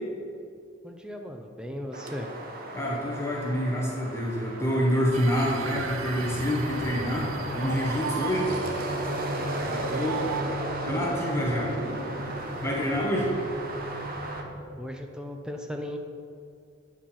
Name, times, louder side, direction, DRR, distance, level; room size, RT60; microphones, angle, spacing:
voice 1, 0.8-2.3 8.5-8.8 10.1-10.2 14.8-16.0, equal, 5° right, 3 dB, 0.5 m, -37 dB
sound 1, 1.9-14.4, right 1 dB, 45° right, 0.9 m, -36 dB
voice 2, 2.7-7.3 7.5-8.5 9.6-10.2 10.8-11.7 12.6-13.3, equal, 15° left, -3 dB, 1.1 m, -27 dB
sound 2, 5.1-10.4, right 6 dB, 85° right, 0.5 m, -37 dB
sound 3, 6.7-14.8, equal, 70° left, 2.1 m, -37 dB
8.6 x 5.1 x 5.6 m, 2.3 s
head